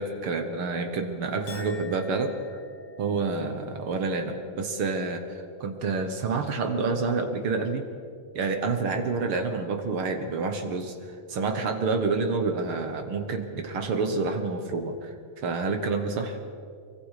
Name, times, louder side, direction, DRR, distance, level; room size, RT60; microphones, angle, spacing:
voice 1, 0.0-2.3 3.0-7.9 8.3-16.4, right 4 dB, 60° right, 6 dB, 1.5 m, -28 dB
Chink clink, 1.5-8.0 8.4-9.0, left 3 dB, 55° left, 2.9 m, -51 dB
24.0 x 23.5 x 4.9 m, 2.4 s
omnidirectional pair, 3.8 m